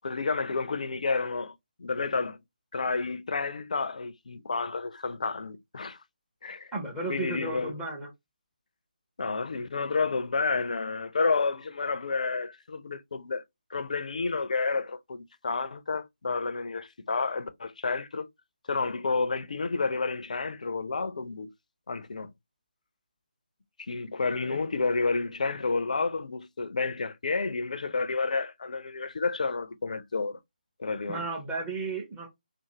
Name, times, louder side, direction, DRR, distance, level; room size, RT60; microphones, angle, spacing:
voice 1, 0.0-2.4 2.7-6.0 6.4-6.7 7.1-7.7 9.2-13.4 13.7-18.3 18.7-21.5 21.9-22.3 23.9-30.4 30.8-31.2, left 4 dB, 50° left, 0.4 m, -30 dB
voice 2, 6.7-8.1 24.3-24.6 31.1-32.3, right 3 dB, 5° right, 0.5 m, -34 dB
2.5 x 2.4 x 2.8 m
figure-of-eight pair, 150°, 5 cm